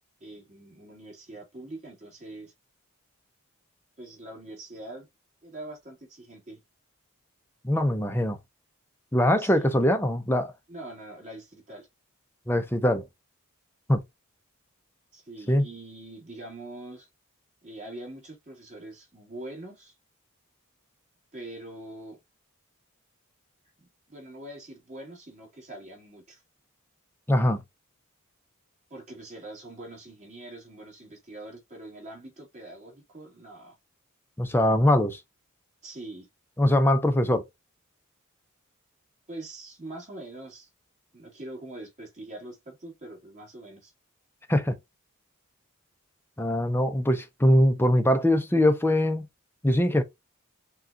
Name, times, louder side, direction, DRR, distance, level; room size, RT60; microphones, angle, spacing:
voice 1, 0.2-2.5 4.0-5.1 5.4-6.6 9.4-9.7 10.7-11.9 15.1-17.1 17.6-19.9 21.3-22.2 23.8-26.4 28.9-33.7 35.8-36.3 39.3-40.7 41.1-43.9, right 2 dB, 35° right, 2.2 m, -43 dB
voice 2, 7.6-8.4 9.1-10.5 12.5-13.0 13.9-14.0 15.5-15.7 27.3-27.6 34.4-35.2 36.6-37.4 44.5-44.8 46.4-49.3 49.6-50.0, left 1 dB, 10° left, 0.5 m, -22 dB
6.2 x 2.4 x 2.6 m
head